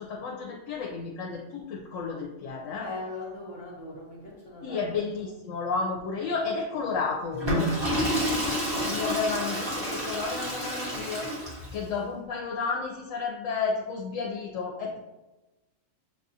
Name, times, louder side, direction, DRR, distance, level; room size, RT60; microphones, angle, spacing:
voice 1, 0.0-2.8 4.6-7.4 8.9-15.0, left 4 dB, 80° left, 0 dB, 1.0 m, -32 dB
voice 2, 2.7-5.4, left 2 dB, 50° left, -3 dB, 1.1 m, -40 dB
Water / Toilet flush, 7.3-11.8, equal, 20° right, 1.3 m, -29 dB
7.0 x 2.4 x 2.7 m, 1.1 s
omnidirectional pair, 1.3 m